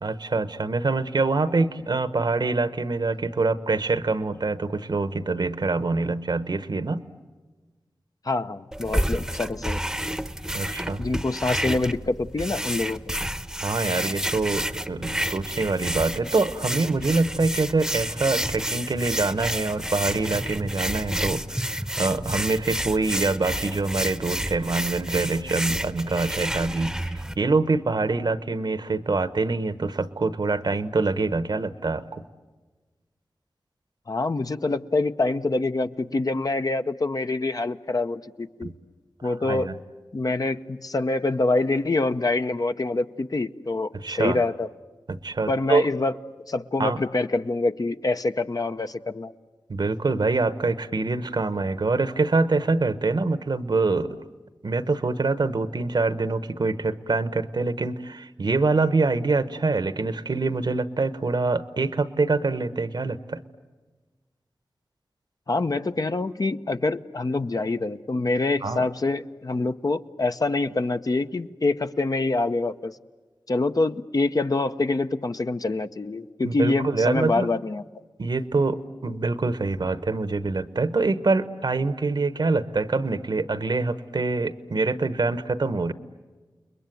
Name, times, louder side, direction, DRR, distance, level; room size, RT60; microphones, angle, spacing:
voice 1, 0.0-7.1 10.5-11.0 13.6-32.2 38.6-38.7 39.2-39.7 43.9-44.4 45.1-45.8 46.8-47.0 49.7-54.2 54.6-63.4 68.6-68.9 76.4-77.5 78.2-85.9, right 3 dB, 65° right, 13 dB, 1.1 m, -25 dB
voice 2, 8.2-9.8 11.0-13.1 34.1-38.7 39.2-39.7 40.1-44.7 45.5-46.1 46.5-49.3 65.5-73.0 73.5-77.8, left 2 dB, 50° left, 9 dB, 0.8 m, -25 dB
sound 1, 8.7-27.3, right 1 dB, 5° right, 0.9 m, -30 dB
29.5 x 21.0 x 9.3 m, 1.3 s
cardioid pair, 40°, 8 cm